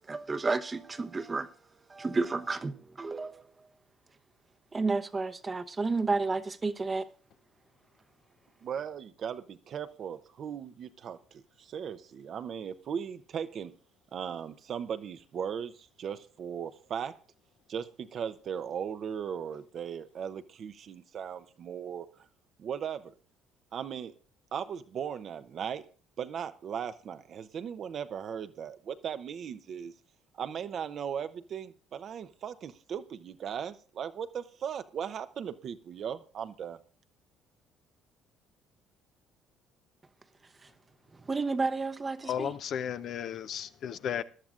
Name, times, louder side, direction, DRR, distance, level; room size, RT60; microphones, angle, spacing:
voice 1, 0.1-1.6 1.9-3.5 4.7-7.0 41.2-42.5, right 3 dB, 25° right, 0.9 m, -31 dB
voice 2, 8.6-13.7 14.1-17.2 17.7-22.1 22.6-23.1 23.7-24.1 24.5-25.8 26.2-29.9 30.4-36.8, right 8 dB, 55° right, 0.8 m, -37 dB
voice 3, 42.2-44.2, left 9 dB, 60° left, 0.7 m, -34 dB
21.0 x 11.5 x 2.5 m
supercardioid pair, 65°, 0 cm